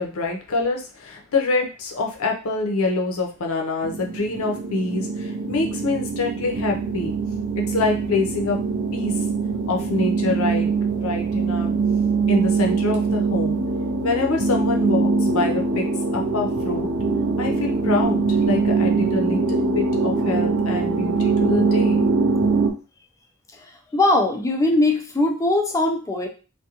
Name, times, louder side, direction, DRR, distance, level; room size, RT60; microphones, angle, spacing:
voice 1, 0.0-7.2 7.6-8.6 8.9-9.1 9.7-10.7 11.0-11.7 12.3-13.6 14.0-15.8 16.1-16.9 17.4-22.0, left 3 dB, 70° left, 2 dB, 0.6 m, -25 dB
sound 1, 3.8-22.7, right 4 dB, 55° right, 0.4 m, -23 dB
voice 2, 23.5-26.3, left 2 dB, 15° left, 2 dB, 0.4 m, -21 dB
2.4 x 2.2 x 2.8 m, 0.34 s
head